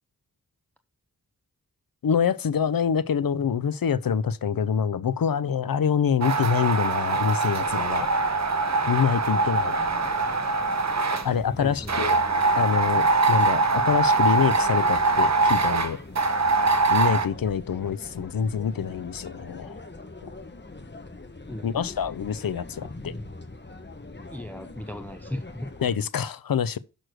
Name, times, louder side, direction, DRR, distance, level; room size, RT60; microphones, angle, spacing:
voice 1, 2.0-8.1 8.9-9.8 11.2-12.2 12.6-16.0 16.9-19.8 20.2-20.3 21.6-23.1 25.8-26.8, left 7 dB, 75° left, 0.6 m, -26 dB
sound 1, 6.2-11.3 11.9-17.3, right 3 dB, 50° right, 0.9 m, -23 dB
sound 2, 7.6-26.0, left 2 dB, 30° left, 1.2 m, -42 dB
voice 2, 11.6-11.9 21.5-22.0 24.3-25.7, left 1 dB, 5° left, 0.6 m, -37 dB
6.4 x 6.1 x 6.4 m
wide cardioid pair, 70°, 35 cm